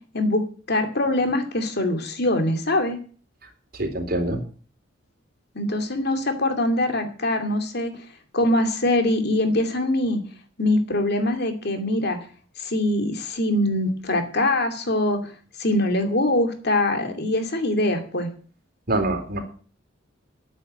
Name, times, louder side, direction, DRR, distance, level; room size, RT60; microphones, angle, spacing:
voice 1, 0.7-3.0 5.5-7.9 8.3-10.2 10.6-12.2 12.6-15.2 15.6-18.3, left 1 dB, 55° left, 6 dB, 2.5 m, -23 dB
voice 2, 3.7-4.4 18.9-19.4, right 2 dB, 50° right, 4 dB, 3.8 m, -25 dB
10.5 x 9.3 x 8.7 m, 0.41 s
head